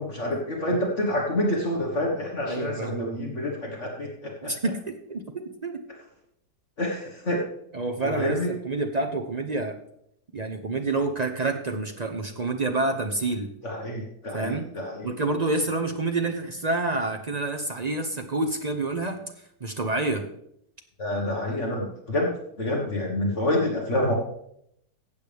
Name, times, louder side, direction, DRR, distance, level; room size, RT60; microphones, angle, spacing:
voice 1, 0.0-4.5 6.8-7.4 8.0-8.5 13.6-15.1 21.0-22.3 22.6-24.1, left 1 dB, 45° left, -1 dB, 1.8 m, -27 dB
voice 2, 2.5-3.0 4.4-5.8 7.7-9.8 10.3-13.5 14.3-14.7 15.0-19.2 19.6-20.3, right 2 dB, 45° right, 4 dB, 0.5 m, -28 dB
15.0 x 8.4 x 3.4 m, 0.74 s
omnidirectional pair, 1.8 m